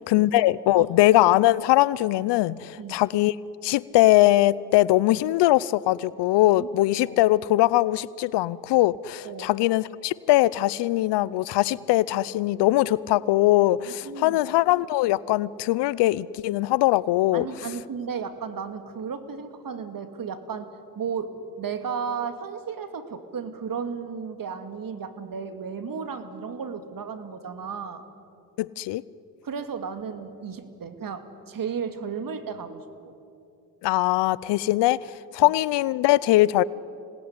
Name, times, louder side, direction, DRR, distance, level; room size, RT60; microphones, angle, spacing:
voice 1, 0.1-3.3 3.6-17.5 28.6-29.0 33.8-35.0 35.3-36.6, left 16 dB, 80° left, 21 dB, 0.7 m, -21 dB
voice 2, 13.9-14.4 17.3-28.0 29.4-33.1 35.4-35.5, right 6 dB, 55° right, 9 dB, 2.4 m, -34 dB
26.0 x 19.5 x 9.7 m, 2.6 s
supercardioid pair, 60°, 41 cm